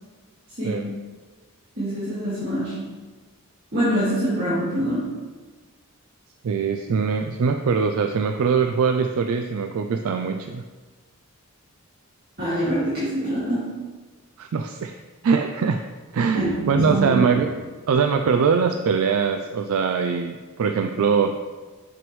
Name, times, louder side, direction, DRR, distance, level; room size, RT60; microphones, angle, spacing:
voice 1, 0.6-0.9 1.8-3.0 3.7-5.1 12.4-13.8 16.3-17.4, right 1 dB, 45° right, -12 dB, 2.1 m, -25 dB
voice 2, 6.4-10.6 14.4-15.0 15.2-15.8 16.1-17.6 17.9-21.3, right 5 dB, 70° right, 5 dB, 0.3 m, -22 dB
7.0 x 5.9 x 3.1 m, 1.4 s
head